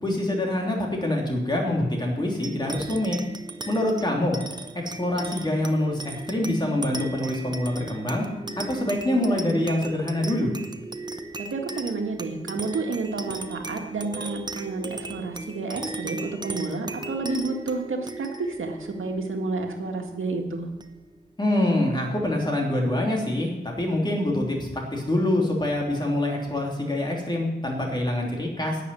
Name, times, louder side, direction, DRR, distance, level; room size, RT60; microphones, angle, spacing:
voice 1, 0.0-3.2 3.7-4.4 4.8-8.3 8.6-10.5 21.4-28.8, left 1 dB, 20° left, 0 dB, 2.8 m, -25 dB
sound 1, 2.4-21.3, right 2 dB, 20° right, 0.8 m, -37 dB
voice 2, 11.4-20.7, right 3 dB, 80° right, 2 dB, 1.9 m, -30 dB
12.0 x 7.2 x 9.3 m, 1.1 s
wide cardioid pair, 155°, 20 cm